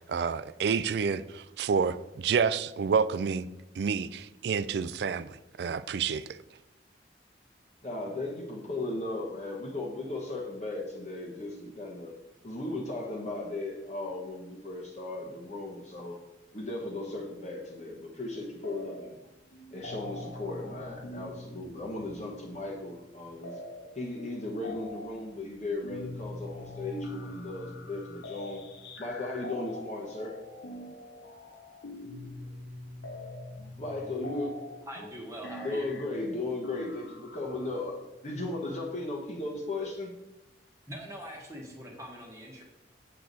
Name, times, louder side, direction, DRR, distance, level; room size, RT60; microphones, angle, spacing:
voice 1, 0.1-3.5 3.8-6.2, right 6 dB, 65° right, 0.3 m, -29 dB
voice 2, 7.8-12.1 12.4-16.2 16.5-19.2 19.7-23.6 23.9-28.6 29.0-30.4 33.8-34.8 35.6-38.0 38.2-40.1, left 2 dB, 40° left, 1.1 m, -36 dB
sound 1, 18.6-19.3 19.5-37.8, left 2 dB, 75° left, 0.9 m, -44 dB
voice 3, 34.9-35.9 40.9-42.6, equal, 15° right, 1.3 m, -42 dB
7.6 x 6.7 x 4.0 m
head